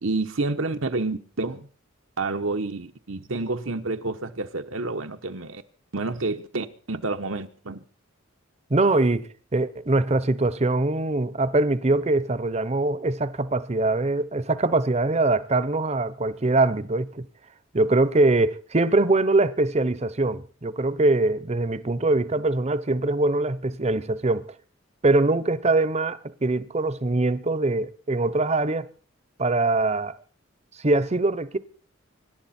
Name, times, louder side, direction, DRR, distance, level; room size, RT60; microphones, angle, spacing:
voice 1, 0.0-1.7 2.2-5.6 5.9-7.8, right 3 dB, 75° right, 1.1 m, -29 dB
voice 2, 8.7-17.3 17.7-24.5 25.0-28.9 29.4-30.1 30.8-31.6, right 2 dB, 30° right, 0.8 m, -23 dB
25.0 x 11.5 x 4.3 m
head